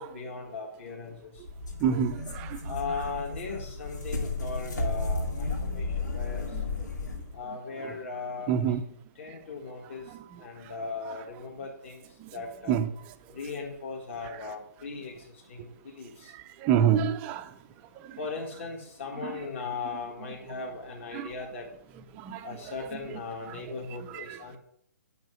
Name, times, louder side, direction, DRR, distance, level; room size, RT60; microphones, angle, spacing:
voice 1, 0.0-1.4 1.9-2.0 2.7-6.5 7.3-8.8 9.2-10.0 10.4-12.0 12.3-12.7 13.3-16.3 18.2-21.7 22.4-24.6, left 4 dB, 45° left, 1.7 m, -38 dB
sound 1, 1.4-7.3, left 3 dB, 90° left, 2.4 m, -33 dB
voice 2, 1.8-2.6 6.5-6.6 8.5-8.8 12.2-12.3 12.7-12.9 16.6-17.5 21.1-21.3 22.1-22.5 24.1-24.2, right 8 dB, 15° right, 0.4 m, -26 dB
9.2 x 5.6 x 6.1 m
hypercardioid pair, 160°, 10 cm